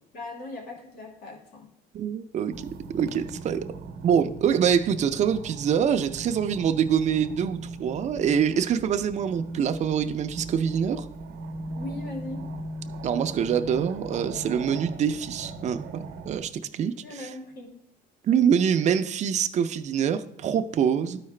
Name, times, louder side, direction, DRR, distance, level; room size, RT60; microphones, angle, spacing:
voice 1, 0.1-1.7 11.8-12.4 17.0-17.7, left 2 dB, 65° left, -1 dB, 2.3 m, -39 dB
voice 2, 1.9-3.7 4.0-11.1 13.0-17.3 18.2-21.2, right 8 dB, 45° right, 9 dB, 0.5 m, -25 dB
sound 1, 2.5-16.5, right 2 dB, 80° right, 0.8 m, -39 dB
12.5 x 4.8 x 3.2 m, 0.77 s
cardioid pair, 110°, 17 cm